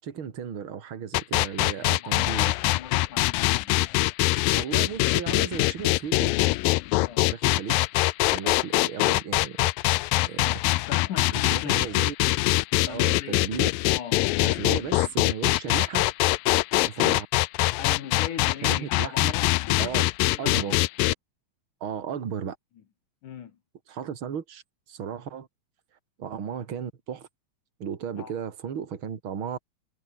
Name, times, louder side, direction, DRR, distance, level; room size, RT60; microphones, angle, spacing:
voice 1, 0.0-2.5 4.5-6.3 7.3-7.7 8.3-9.7 10.3-10.6 11.3-12.1 12.8-13.7 14.4-16.0 16.9-17.3 18.6-19.3 19.8-20.0 20.4-20.7 21.8-22.6 23.9-24.6 24.9-25.5 26.2-27.3 27.8-29.6, right 7 dB, 40° right, 2.8 m, -35 dB
sound 1, 1.1-21.1, left 20 dB, 90° left, 2.4 m, -23 dB
voice 2, 1.8-3.8 7.0-7.3 8.4-8.7 10.8-11.9 12.8-13.5 13.9-14.3 17.8-20.8 23.2-23.6 28.2-28.3, left 8 dB, 65° left, 3.3 m, -39 dB
omnidirectional pair, 4.0 m